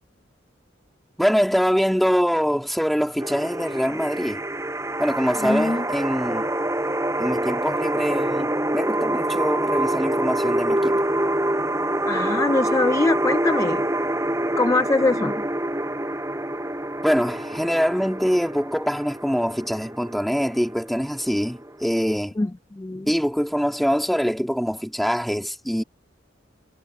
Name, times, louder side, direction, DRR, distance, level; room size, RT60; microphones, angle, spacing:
voice 1, 1.2-4.4 5.0-6.5 7.2-11.0 17.0-22.3 23.0-25.8, equal, ahead, 2.5 m, -24 dB
sound 1, 3.2-22.2, right 1 dB, 15° right, 5.7 m, -26 dB
voice 2, 5.4-5.8 12.1-13.9 14.6-15.4 22.4-22.5 22.8-23.1, left 2 dB, 15° left, 0.3 m, -22 dB
head